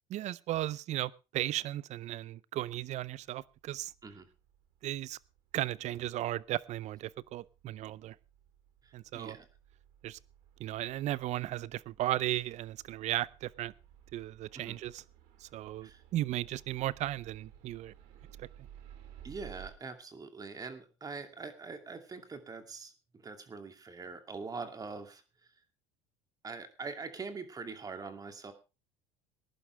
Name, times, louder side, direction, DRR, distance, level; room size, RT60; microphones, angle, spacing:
voice 1, 0.1-3.9 4.8-5.2 5.5-8.2 8.9-9.4 10.0-10.2 10.6-13.7 14.1-15.0 15.4-17.9 18.4-18.5, right 14 dB, 50° right, 21 dB, 0.6 m, -35 dB
sound 1, 3.2-19.7, right 10 dB, 70° right, 3.3 m, -57 dB
voice 2, 8.8-9.5 14.6-14.8 15.8-16.0 19.2-25.2 26.4-28.5, right 4 dB, 25° right, 7 dB, 2.5 m, -43 dB
20.0 x 11.0 x 3.3 m, 0.29 s
supercardioid pair, 100°, 15 cm